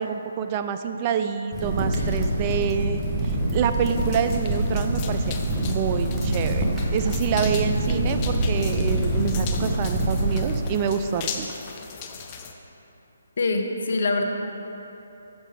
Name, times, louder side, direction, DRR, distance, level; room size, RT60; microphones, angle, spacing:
voice 1, 0.0-6.6 6.9-11.5, right 7 dB, 30° right, 8 dB, 0.3 m, -27 dB
Crackle, 1.5-10.6, right 1 dB, 10° right, 1.0 m, -25 dB
sound 1, 3.8-12.5, left 6 dB, 25° left, 0.6 m, -39 dB
voice 2, 13.4-14.2, left 3 dB, 60° left, 4 dB, 0.9 m, -24 dB
7.3 x 6.7 x 4.7 m, 3.0 s
hypercardioid pair, 150°, 0 cm